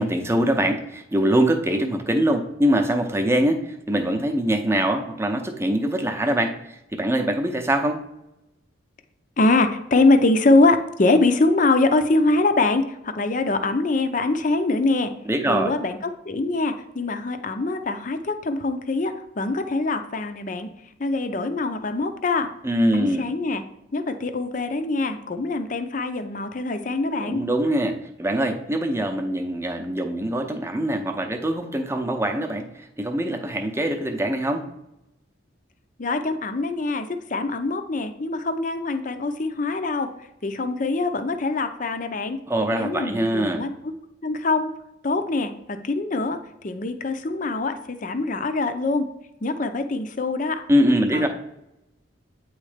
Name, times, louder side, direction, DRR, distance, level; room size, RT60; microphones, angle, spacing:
voice 1, 0.0-8.0 15.3-15.7 22.6-23.2 27.2-34.7 42.5-43.7 50.7-51.3, right 1 dB, 15° right, 4 dB, 0.7 m, -23 dB
voice 2, 9.4-15.1 15.4-16.0 16.2-20.7 21.0-22.5 22.9-23.6 23.9-27.4 36.0-40.1 40.4-42.4 42.7-43.7 44.2-44.7 45.0-46.4 46.6-49.1 49.4-50.6 51.1-51.3, left 2 dB, 40° left, 8 dB, 0.6 m, -23 dB
8.6 x 3.2 x 5.0 m, 0.87 s
head